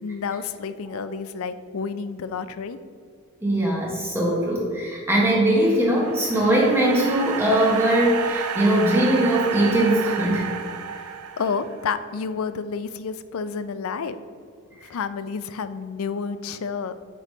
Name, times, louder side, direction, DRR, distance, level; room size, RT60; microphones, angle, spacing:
voice 1, 0.0-2.8 10.9-14.2 14.8-16.9, left 5 dB, 70° left, 12 dB, 0.4 m, -30 dB
voice 2, 3.4-10.5 14.8-14.9, right 1 dB, 10° right, -4 dB, 0.9 m, -21 dB
sound 1, 5.5-11.9, right 7 dB, 80° right, 0.5 m, -31 dB
7.8 x 5.0 x 3.1 m, 2.2 s
head